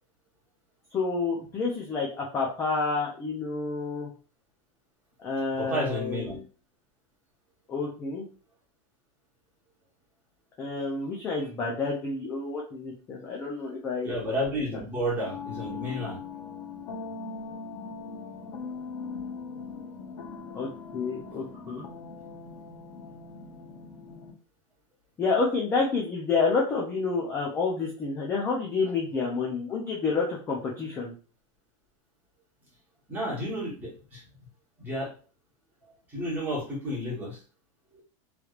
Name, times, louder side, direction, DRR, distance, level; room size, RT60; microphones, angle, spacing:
voice 1, 0.9-4.1 5.2-6.4 7.7-8.3 10.6-14.1 20.5-21.9 25.2-31.1, left 4 dB, 15° left, -2 dB, 0.4 m, -29 dB
voice 2, 5.6-6.4 14.0-16.2 21.7-21.8 33.1-34.2 34.8-35.1 36.1-37.4 37.9-38.0, equal, 10° right, -6 dB, 1.2 m, -31 dB
sound 1, 15.2-24.3, left 5 dB, 85° left, 0.7 m, -40 dB
3.2 x 3.1 x 2.4 m, 0.37 s
supercardioid pair, 175°, 17 cm